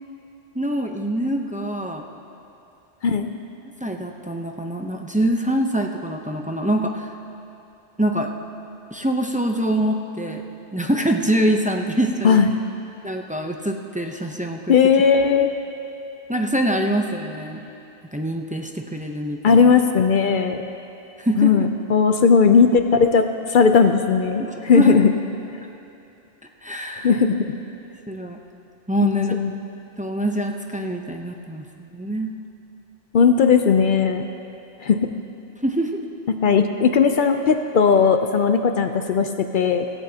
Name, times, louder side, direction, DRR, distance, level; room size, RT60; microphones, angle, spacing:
voice 1, 0.5-2.0 3.8-7.1 8.0-8.3 8.9-10.4 10.7-12.4 13.0-14.8 16.3-17.6 18.1-19.6 21.2-21.7 24.4-25.0 26.6-27.1 28.1-28.4 28.9-29.3 30.0-32.3 35.6-36.0, right 1 dB, 10° right, 2 dB, 0.5 m, -24 dB
voice 2, 3.0-3.4 12.2-12.5 14.7-15.5 19.4-20.6 21.4-25.1 27.0-27.4 29.0-29.5 33.1-34.3 34.8-35.1 36.3-39.9, left 6 dB, 55° left, 7 dB, 0.6 m, -17 dB
16.5 x 16.5 x 2.8 m, 2.8 s
omnidirectional pair, 1.2 m